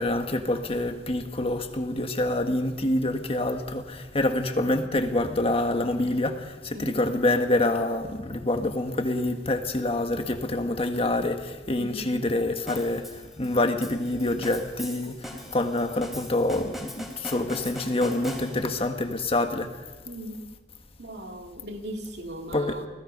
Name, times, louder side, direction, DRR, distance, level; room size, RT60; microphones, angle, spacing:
voice 1, 0.0-19.8 22.5-22.8, left 1 dB, 35° left, 1.6 m, -26 dB
voice 2, 11.8-12.1 20.0-20.5 21.0-22.9, equal, 75° right, 2.4 m, -38 dB
sound 1, 12.7-18.9, equal, ahead, 3.7 m, -40 dB
29.5 x 19.0 x 5.4 m
head